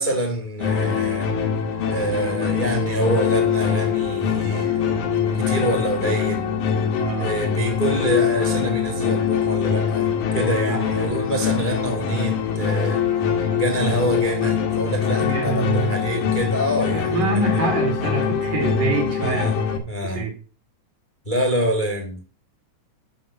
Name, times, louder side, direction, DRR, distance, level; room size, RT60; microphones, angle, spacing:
voice 1, 0.0-1.3 1.9-5.0 5.3-6.5 7.2-13.0 13.5-17.6 19.2-19.5 19.9-20.2 21.2-22.2, right 1 dB, 20° left, 1.6 m, -26 dB
sound 1, 0.6-19.8, left 7 dB, 70° left, 2.8 m, -23 dB
voice 2, 7.0-7.3 10.7-10.8 15.2-15.9 16.9-19.6 20.0-20.3, right 4 dB, 85° right, 4.5 m, -25 dB
11.5 x 3.9 x 7.3 m
omnidirectional pair, 3.7 m